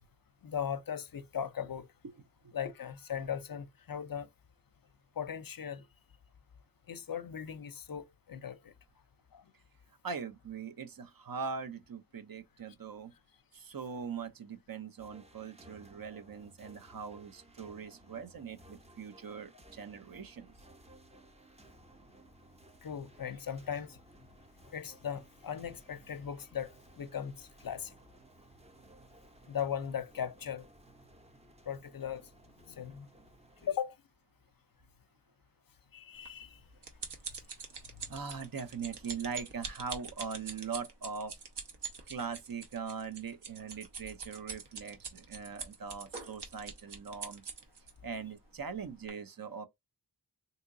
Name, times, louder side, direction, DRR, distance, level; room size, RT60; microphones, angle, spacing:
voice 1, 0.4-1.9 2.5-4.3 5.2-5.9 6.9-8.7 9.3-9.4 22.8-24.0 24.7-27.9 29.5-30.7 31.7-32.3 32.7-33.1 33.6-34.0 35.9-36.6 38.0-38.1, left 8 dB, 55° left, 0.5 m, -38 dB
voice 2, 10.0-13.1 13.5-20.5 38.1-41.3 42.1-47.4 48.0-49.7, right 6 dB, 55° right, 0.6 m, -41 dB
sound 1, 15.0-33.7, right 1 dB, 15° right, 0.6 m, -59 dB
sound 2, 36.3-47.9 48.6-48.7 49.1-49.2, right 5 dB, 80° right, 1.0 m, -44 dB
3.7 x 2.8 x 2.6 m
wide cardioid pair, 85°, 40 cm